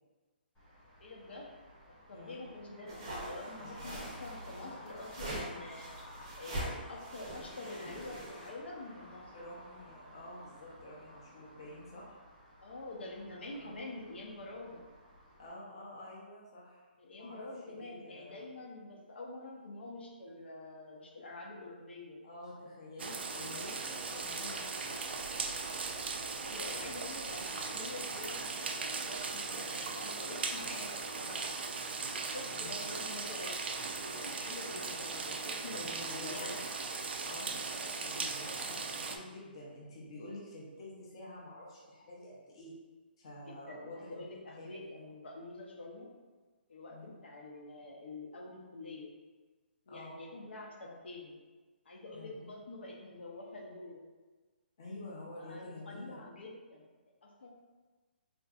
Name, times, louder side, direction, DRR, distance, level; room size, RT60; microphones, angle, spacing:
Traffic noise roadway noise, 0.5-15.5, equal, 10° left, 0.9 m, -53 dB
voice 1, 1.0-1.5 1.9-5.9 6.3-9.3 12.6-14.8 17.0-22.2 26.3-31.7 32.3-33.6 34.0-36.6 37.6-37.8 43.4-46.1 46.7-49.1 49.9-51.4 51.8-54.0 55.4-56.8 57.2-57.5, left 2 dB, 80° left, -1 dB, 0.7 m, -47 dB
voice 2, 2.1-2.5 3.6-4.0 9.3-12.2 13.6-13.7 15.4-16.9 17.1-18.3 22.2-25.0 32.5-32.8 35.7-36.6 37.2-37.5 38.0-42.7 43.2-45.0 46.9-47.1 49.9-50.2 52.1-52.4 54.8-56.2, left 1 dB, 30° left, -5 dB, 0.5 m, -48 dB
sound 1, 2.9-8.5, right 1 dB, 25° right, 0.6 m, -43 dB
sound 2, 23.0-39.2, right 4 dB, 75° right, 0.3 m, -38 dB
3.7 x 2.5 x 2.3 m, 1.3 s
hypercardioid pair, 180°, 6 cm